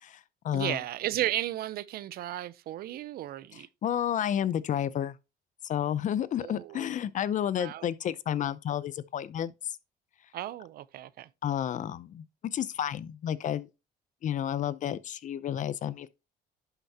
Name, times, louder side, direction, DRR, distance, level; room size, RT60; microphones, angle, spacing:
voice 1, 0.0-0.8 3.5-5.1 5.6-9.8 11.4-12.2 12.5-13.7 14.2-16.1, left 10 dB, 50° left, 0.6 m, -31 dB
voice 2, 0.5-3.7 6.4-6.9 7.6-7.8 10.3-11.3, right 13 dB, 65° right, 0.6 m, -34 dB
11.0 x 5.9 x 2.8 m
cardioid pair, 110°, 17 cm